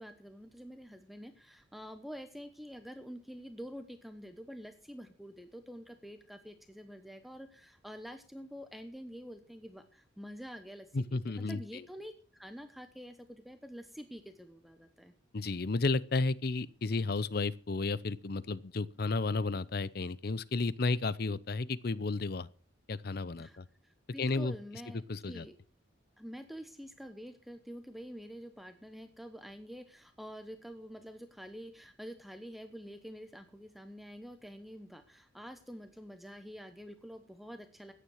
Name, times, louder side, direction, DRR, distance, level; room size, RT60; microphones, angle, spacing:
voice 1, 0.0-10.9 11.3-15.1 23.4-23.6 23.8-25.5 26.2-37.9, equal, ahead, 1.0 m, -47 dB
voice 2, 10.9-11.8 15.3-22.5 22.9-23.7 24.2-24.5 25.1-25.5, left 3 dB, 50° left, 0.6 m, -32 dB
15.0 x 10.0 x 6.4 m
head